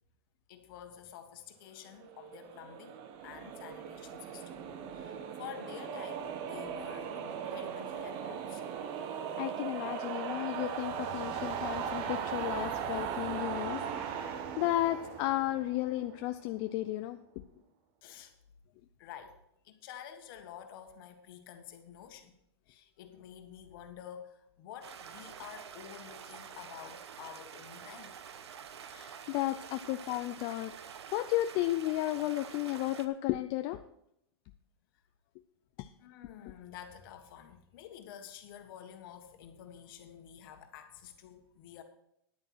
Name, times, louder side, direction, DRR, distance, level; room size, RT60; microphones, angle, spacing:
voice 1, 0.5-8.6 18.0-18.3 19.0-19.4 19.6-22.4 22.7-28.2 36.0-41.8, left 9 dB, 55° left, 6 dB, 1.6 m, -49 dB
sound 1, 2.0-16.3, right 7 dB, 40° right, 1.1 m, -38 dB
voice 2, 9.4-17.2 28.9-30.7 31.1-33.8 35.8-35.9, left 15 dB, 40° left, 9 dB, 0.5 m, -33 dB
Stream, 24.8-33.1, right 7 dB, 80° right, 0.9 m, -48 dB
10.5 x 9.0 x 4.5 m, 0.77 s
hypercardioid pair, 130°, 14 cm